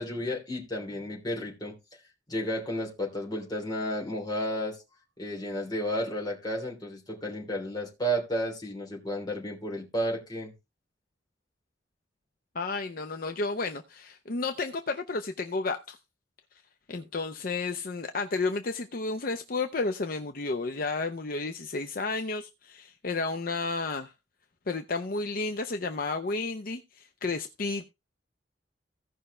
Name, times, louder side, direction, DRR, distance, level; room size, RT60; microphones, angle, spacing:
voice 1, 0.0-1.7 2.3-4.8 5.2-10.5, equal, 25° left, 3.1 m, -32 dB
voice 2, 12.5-16.0 16.9-24.1 24.7-27.9, left 3 dB, 50° left, 0.7 m, -32 dB
16.5 x 5.6 x 3.3 m
head